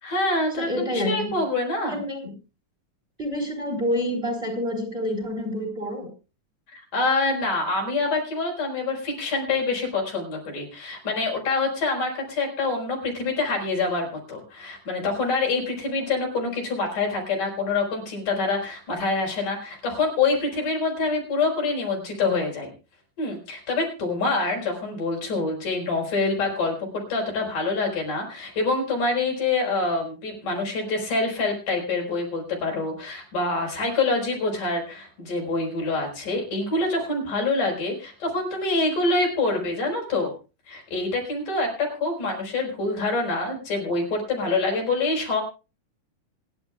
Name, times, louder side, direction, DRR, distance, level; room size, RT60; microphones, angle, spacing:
voice 1, 0.0-2.0 6.7-22.7 23.2-40.3 40.7-45.4, left 3 dB, 85° left, 0 dB, 6.3 m, -26 dB
voice 2, 0.6-1.4 1.9-2.3 3.2-6.1, left 1 dB, 20° right, 2 dB, 4.4 m, -28 dB
26.0 x 11.0 x 2.4 m, 0.31 s
omnidirectional pair, 3.6 m